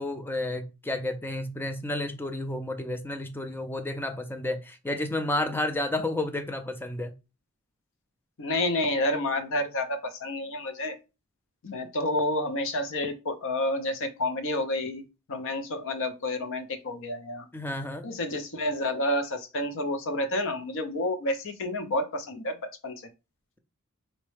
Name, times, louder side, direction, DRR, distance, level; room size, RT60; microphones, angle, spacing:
voice 1, 0.0-7.1 17.5-18.1, left 1 dB, 10° left, 0.4 m, -31 dB
voice 2, 8.4-11.0 11.6-15.0 15.3-17.5 18.0-22.6 22.8-22.9, left 1 dB, 60° left, 0.6 m, -29 dB
3.9 x 2.1 x 3.1 m
head